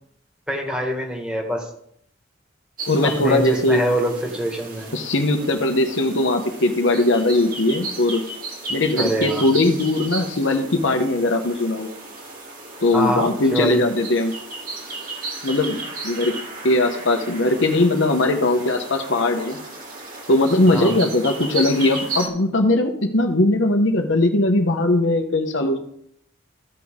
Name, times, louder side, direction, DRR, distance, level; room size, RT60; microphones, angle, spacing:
voice 1, 0.5-1.6 3.0-4.9 9.0-9.4 12.9-13.8 20.7-20.9, equal, 5° right, 1 dB, 1.7 m, -24 dB
sound 1, 2.8-22.3, right 3 dB, 45° right, 2.2 m, -34 dB
voice 2, 2.9-3.8 4.9-8.2 8.7-11.9 12.8-14.3 15.4-16.3 16.6-19.6 20.3-25.8, left 2 dB, 70° left, 4 dB, 1.1 m, -20 dB
14.5 x 6.2 x 3.7 m, 0.69 s
head